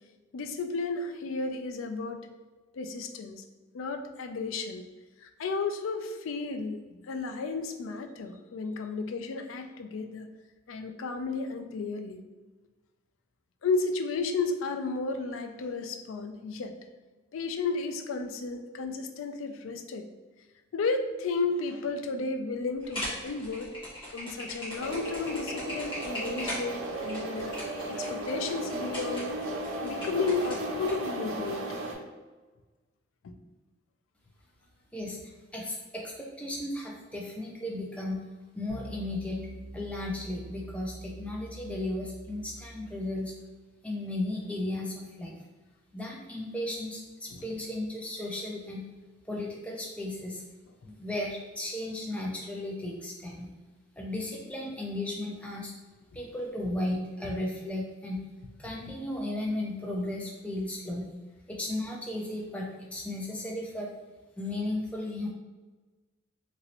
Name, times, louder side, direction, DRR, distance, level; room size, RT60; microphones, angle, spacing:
voice 1, 0.3-2.3 2.7-3.4 3.7-4.8 5.2-6.8 7.1-10.3 10.7-12.2 13.6-16.7 17.3-20.1 20.7-23.7 24.1-27.5 27.9-29.4 29.8-31.6 33.2-33.3 47.3-47.4, left 4 dB, 80° left, 6 dB, 0.4 m, -33 dB
sound 1, 22.8-30.9, equal, 25° left, 1.3 m, -39 dB
sound 2, 24.8-31.9, right 1 dB, 85° right, 0.6 m, -35 dB
voice 2, 35.5-38.2 38.5-39.4 39.7-43.3 43.8-45.3 45.9-48.8 49.3-50.4 50.8-53.5 54.0-55.7 56.1-58.2 58.6-61.1 61.5-63.9 64.4-65.3, left 1 dB, 5° left, -2 dB, 0.3 m, -35 dB
sound 3, 38.7-43.5, right 1 dB, 60° right, 1.0 m, -45 dB
3.0 x 2.6 x 2.8 m, 1.3 s
head